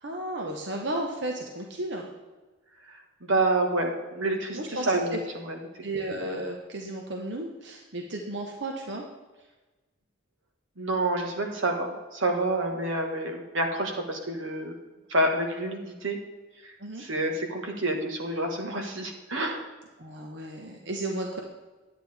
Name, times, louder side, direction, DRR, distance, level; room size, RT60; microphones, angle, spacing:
voice 1, 0.0-2.1 4.5-4.9 5.8-9.0 16.8-17.0 20.0-21.4, right 1 dB, 60° right, 1 dB, 1.0 m, -34 dB
voice 2, 3.2-5.2 5.4-5.6 10.8-14.8 15.1-16.2 16.6-19.6, right 2 dB, 85° right, 3 dB, 1.6 m, -28 dB
11.0 x 8.9 x 3.5 m, 1.2 s
head